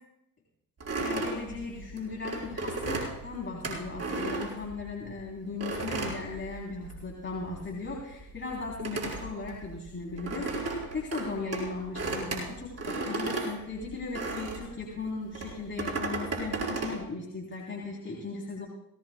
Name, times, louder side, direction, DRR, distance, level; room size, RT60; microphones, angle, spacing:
sound 1, 0.8-5.1 5.6-7.1 7.3-14.7 15.3-17.0, right 3 dB, 30° right, 5.0 m, -34 dB
voice 1, 0.9-18.7, left 3 dB, 25° left, -3 dB, 3.3 m, -37 dB
18.0 x 17.5 x 2.2 m, 0.79 s
hypercardioid pair, 65°, 49 cm